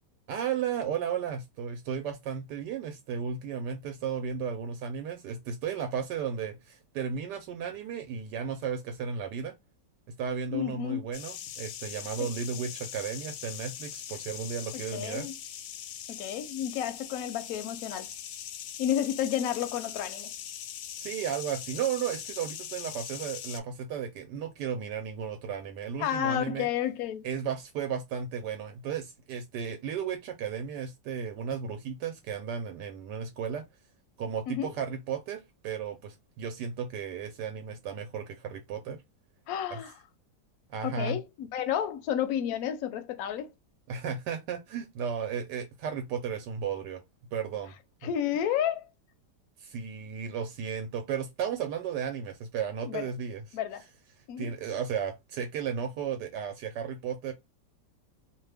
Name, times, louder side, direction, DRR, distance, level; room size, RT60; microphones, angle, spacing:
voice 1, 0.3-9.6 10.2-15.3 21.0-26.7 27.2-33.6 34.2-39.0 39.7-39.8 40.7-41.2 43.9-47.0 47.3-47.7 49.6-53.4 54.4-57.3, right 7 dB, 80° right, 1.2 m, -34 dB
voice 2, 10.5-11.1 12.2-12.3 14.7-15.3 16.1-18.1 18.8-20.3 26.0-27.3 34.5-34.7 39.5-39.9 40.8-43.5 48.0-48.9 52.8-53.1 53.5-53.8 54.3-54.5, left 10 dB, 70° left, 0.9 m, -31 dB
sound 1, 11.1-23.6, left 10 dB, 85° left, 1.2 m, -41 dB
2.8 x 2.2 x 3.3 m
omnidirectional pair, 1.9 m